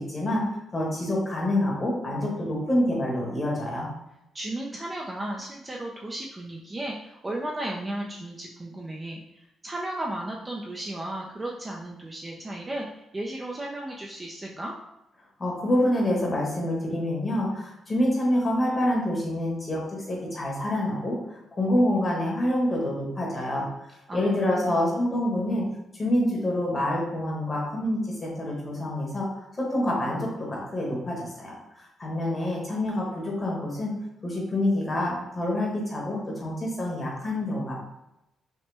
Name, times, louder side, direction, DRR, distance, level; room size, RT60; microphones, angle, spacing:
voice 1, 0.0-3.9 15.4-23.6 24.1-25.7 25.9-29.3 29.6-33.9 34.2-37.8, left 1 dB, 20° left, -3 dB, 1.2 m, -27 dB
voice 2, 4.3-9.2 9.6-14.7 24.1-24.7, right 1 dB, 15° right, -1 dB, 0.4 m, -34 dB
5.6 x 2.1 x 3.3 m, 0.88 s
cardioid pair, 165°, 0 cm